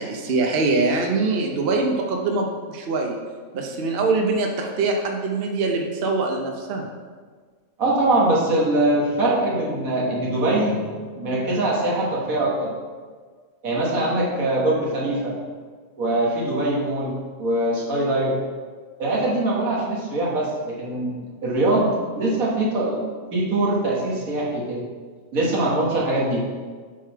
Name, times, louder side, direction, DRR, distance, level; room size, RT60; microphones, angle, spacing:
voice 1, 0.0-3.1 3.5-6.9, right 3 dB, 50° right, 2 dB, 0.9 m, -23 dB
voice 2, 7.8-10.9 11.2-12.7 13.6-15.4 16.0-18.4 19.0-23.0 23.3-24.9 25.3-26.4, right 1 dB, 85° right, -4 dB, 1.9 m, -22 dB
7.4 x 3.9 x 4.5 m, 1.5 s
omnidirectional pair, 1.4 m